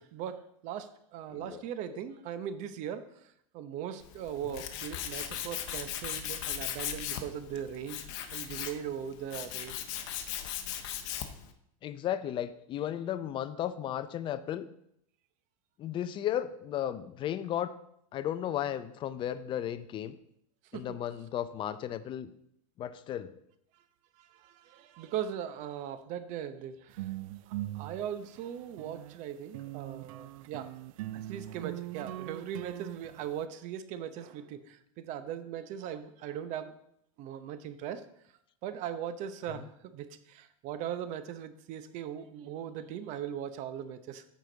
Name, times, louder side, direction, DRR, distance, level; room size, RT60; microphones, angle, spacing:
voice 1, 0.0-8.1 8.3-9.8 20.7-21.0 23.7-23.8 24.1-27.1 27.5-30.7 31.1-36.7 37.2-38.0 38.6-44.2, right 9 dB, 45° right, 12 dB, 0.8 m, -39 dB
voice 2, 1.3-1.6 1.9-2.0 4.5-4.6 11.8-14.7 15.8-17.8 18.1-20.1 20.7-22.3 22.8-23.3, left 11 dB, 30° left, 13 dB, 0.5 m, -34 dB
Tools, 4.0-11.5, left 10 dB, 60° left, 1.0 m, -38 dB
sound 1, 26.9-29.2 29.5-33.5, right 15 dB, 80° right, 0.4 m, -41 dB
14.0 x 5.0 x 3.9 m, 0.73 s
supercardioid pair, 140°, 17 cm